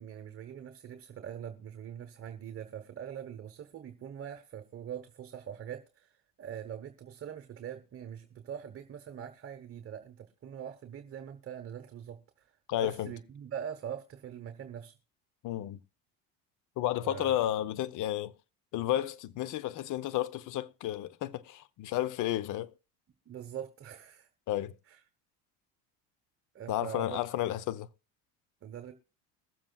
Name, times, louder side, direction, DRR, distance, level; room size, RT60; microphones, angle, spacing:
voice 1, 0.0-12.5 12.8-15.0 17.0-17.4 23.3-24.3 24.9-25.0 26.5-27.3 28.6-28.9, right 9 dB, 40° right, 1.1 m, -43 dB
voice 2, 12.7-13.1 15.4-15.8 16.8-18.3 18.7-22.7 24.5-24.7 26.7-27.9, left 13 dB, 55° left, 0.8 m, -32 dB
22.0 x 7.5 x 2.3 m
supercardioid pair, 85°, 36 cm